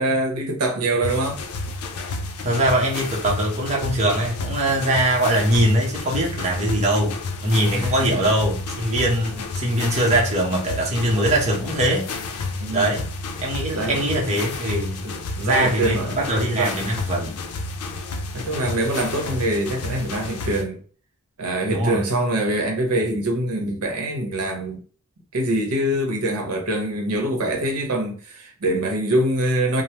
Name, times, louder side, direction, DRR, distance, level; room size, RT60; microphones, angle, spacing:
voice 1, 0.0-1.4 7.7-8.2 12.6-13.0 13.7-14.0 14.3-14.4 15.0-16.2 16.5-16.8 17.2-17.3 18.3-20.8 21.4-24.8 25.3-29.8, right 1 dB, 90° right, 0.8 m, -24 dB
sound 1, 1.0-20.6, left 3 dB, 85° left, 0.5 m, -31 dB
voice 2, 2.4-12.1 12.7-13.1 13.4-15.0 15.4-17.4 21.7-22.0, right 1 dB, 30° right, 0.8 m, -22 dB
3.3 x 2.0 x 2.8 m
head